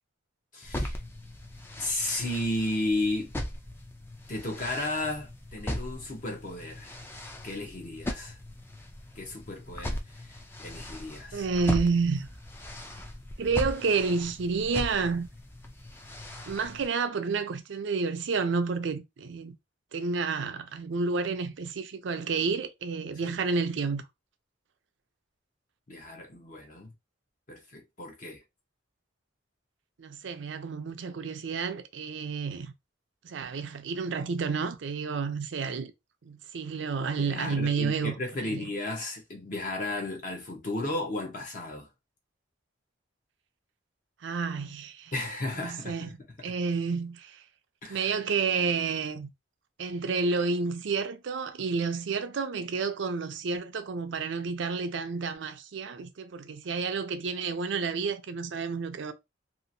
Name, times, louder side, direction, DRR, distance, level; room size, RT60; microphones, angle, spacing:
voice 1, 0.5-1.0 1.8-3.3 4.3-6.9 7.4-8.4 9.2-11.5 23.2-23.4 25.9-26.9 27.5-28.4 37.2-41.9 45.1-46.1 47.8-48.1, left 2 dB, 40° left, 0.7 m, -34 dB
sound 1, 0.6-16.9, left 1 dB, 10° left, 0.4 m, -39 dB
voice 2, 11.3-12.3 13.4-15.3 16.5-19.6 19.9-24.0 30.0-32.7 33.2-35.9 36.2-38.1 38.4-38.7 44.2-45.1 45.6-46.1 46.4-47.4 47.9-49.3 49.8-59.1, right 4 dB, 65° right, 0.4 m, -30 dB
2.8 x 2.4 x 2.6 m
head